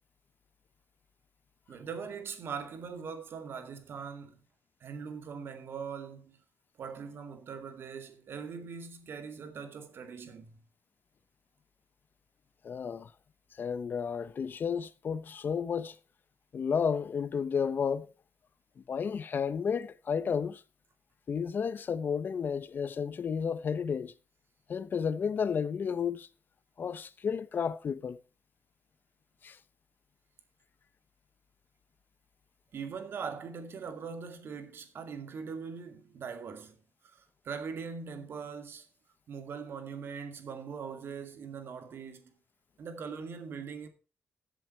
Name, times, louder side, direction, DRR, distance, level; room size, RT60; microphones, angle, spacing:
voice 1, 1.7-4.4 4.8-6.4 6.8-10.6 32.7-36.8 37.1-38.8 39.3-42.3 42.8-43.9, right 6 dB, 65° right, 2.2 m, -41 dB
voice 2, 12.6-13.1 13.6-16.0 16.5-18.1 18.9-20.6 21.3-24.1 24.7-26.3 26.8-28.2 29.4-29.6, left 6 dB, 50° left, 0.7 m, -32 dB
14.5 x 7.7 x 4.4 m
wide cardioid pair, 135°, 4 cm